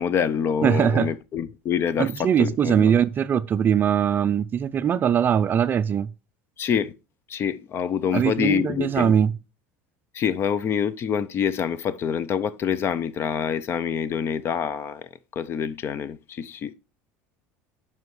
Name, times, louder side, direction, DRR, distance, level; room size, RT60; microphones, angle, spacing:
voice 1, 0.0-3.0 6.6-6.9 7.3-9.1 10.1-16.7, left 8 dB, 40° left, 0.5 m, -26 dB
voice 2, 0.6-1.1 2.0-6.1 8.1-9.3, right 8 dB, 30° right, 0.4 m, -21 dB
9.5 x 5.6 x 3.1 m
supercardioid pair, 125°, 6 cm